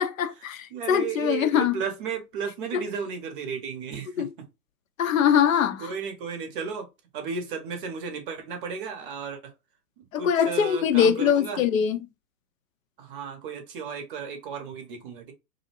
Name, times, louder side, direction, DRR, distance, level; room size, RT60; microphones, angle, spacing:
voice 1, 0.0-1.7 2.7-2.8 4.2-4.3 5.0-5.9 10.1-12.0, left 8 dB, 60° left, 0.5 m, -22 dB
voice 2, 0.7-4.5 5.8-6.9 7.1-9.5 10.0-11.6 13.0-15.3, right 6 dB, 35° right, 0.7 m, -34 dB
2.6 x 2.0 x 2.8 m
hypercardioid pair, 120°, 46 cm